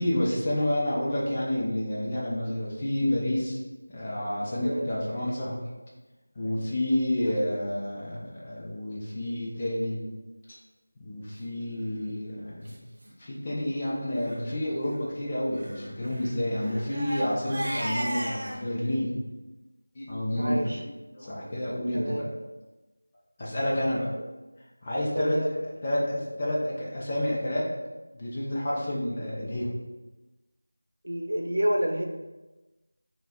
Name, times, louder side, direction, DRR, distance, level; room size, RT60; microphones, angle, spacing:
voice 1, 0.0-3.6 3.9-5.6 6.4-10.0 10.5-10.6 11.0-12.8 13.2-19.2 19.9-20.8 21.1-22.3 23.4-24.1 24.8-25.6 25.8-27.7 28.1-29.7, left 1 dB, 25° left, -6 dB, 0.7 m, -29 dB
voice 2, 4.6-4.9 7.3-7.4 20.4-20.8 21.9-22.3 25.1-25.5 31.0-32.0, equal, 90° right, 2 dB, 0.7 m, -29 dB
Crying sobbing, 11.7-12.0 12.6-12.7 13.0-13.1 13.5-13.7 14.1-14.4 15.5-18.6, right 1 dB, 35° right, 0.7 m, -35 dB
5.5 x 2.4 x 3.6 m, 1.1 s
figure-of-eight pair, 175°, 0 cm